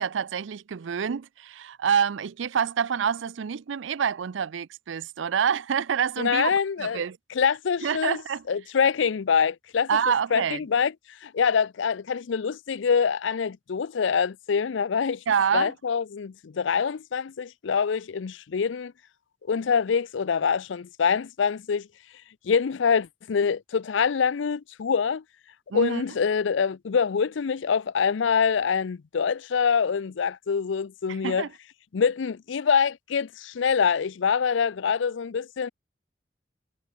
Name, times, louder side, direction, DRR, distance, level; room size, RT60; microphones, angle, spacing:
voice 1, 0.0-7.2 7.8-8.4 9.9-10.6 15.3-15.7 25.7-26.0 31.2-31.5, right 7 dB, 80° right, 0.4 m, -27 dB
voice 2, 6.2-7.0 7.3-8.2 8.5-10.9 11.2-15.2 15.5-18.9 19.5-21.9 22.4-25.2 25.7-31.5 31.9-35.7, left 6 dB, 75° left, 0.5 m, -25 dB
head